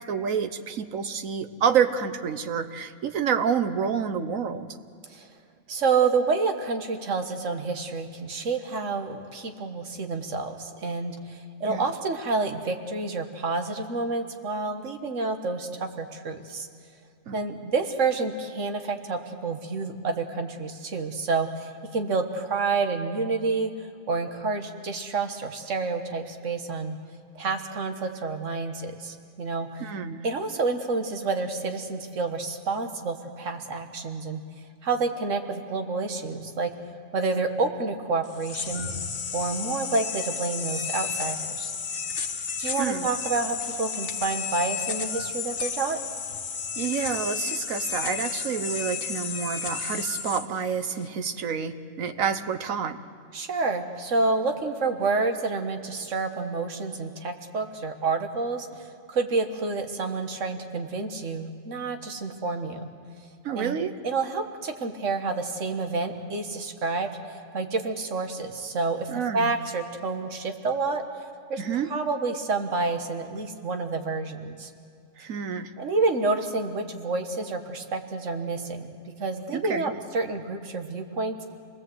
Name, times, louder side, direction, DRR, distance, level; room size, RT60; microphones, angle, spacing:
voice 1, 0.0-4.7 11.7-11.8 17.3-17.4 29.8-30.2 42.8-43.1 46.8-53.0 63.4-64.0 69.1-69.5 71.6-71.9 75.2-75.7 79.5-79.9, right 7 dB, 85° right, 10 dB, 1.5 m, -28 dB
voice 2, 5.7-16.7 17.3-23.7 24.1-27.0 27.4-29.8 30.2-34.4 34.8-36.7 37.1-38.9 39.3-41.7 42.6-46.0 53.3-62.8 63.6-63.8 64.0-67.1 67.5-71.0 71.5-71.6 71.9-74.7 75.8-78.9 79.2-81.4, right 4 dB, 70° right, 5 dB, 1.8 m, -29 dB
sound 1, 38.2-51.1, left 6 dB, 60° left, 1.4 m, -32 dB
28.0 x 20.0 x 7.9 m, 2.4 s
omnidirectional pair, 1.4 m